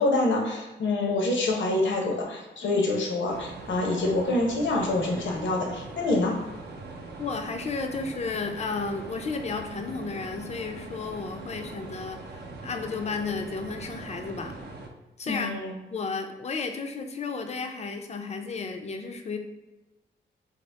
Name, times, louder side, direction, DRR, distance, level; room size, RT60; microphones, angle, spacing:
voice 1, 0.0-6.4 15.2-15.7, left 2 dB, 70° left, 0 dB, 0.7 m, -26 dB
sound 1, 3.3-14.9, right 3 dB, 55° right, 0.5 m, -42 dB
voice 2, 7.2-14.6 15.2-15.5 15.9-19.4, left 4 dB, 35° left, 5 dB, 0.4 m, -33 dB
2.8 x 2.0 x 3.2 m, 1.1 s
cardioid pair, 60°, 20 cm